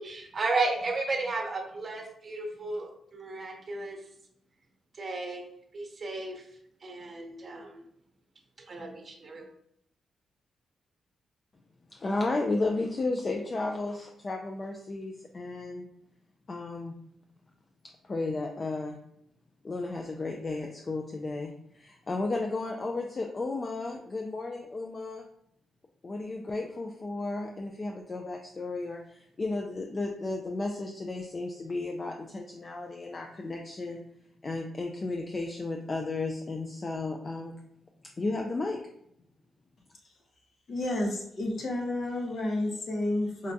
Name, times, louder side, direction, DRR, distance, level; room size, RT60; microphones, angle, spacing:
voice 1, 0.0-4.0 4.9-5.5 5.7-6.5 6.8-7.8 8.7-9.5, right 3 dB, 40° right, 1 dB, 0.8 m, -33 dB
voice 2, 11.9-15.8 16.5-16.9 18.0-19.0 19.6-25.2 26.0-34.0 34.4-37.5 38.2-38.8, left 3 dB, 35° left, 2 dB, 0.4 m, -33 dB
voice 3, 40.7-43.5, left 1 dB, 55° left, 0 dB, 0.9 m, -30 dB
4.9 x 2.2 x 2.6 m, 0.72 s
cardioid pair, 80°, 0 cm